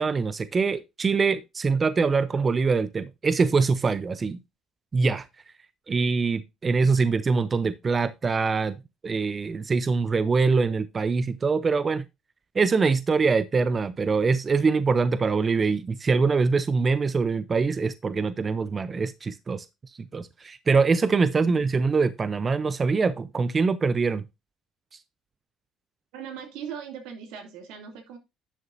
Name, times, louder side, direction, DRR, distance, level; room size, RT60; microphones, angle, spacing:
voice 1, 0.0-4.4 4.9-5.3 5.9-12.0 12.5-19.7 20.1-24.2, right 4 dB, 30° right, 0.6 m, -24 dB
voice 2, 26.1-28.2, right 7 dB, 85° right, 2.7 m, -39 dB
11.0 x 6.8 x 2.6 m
cardioid pair, 105°, 0 cm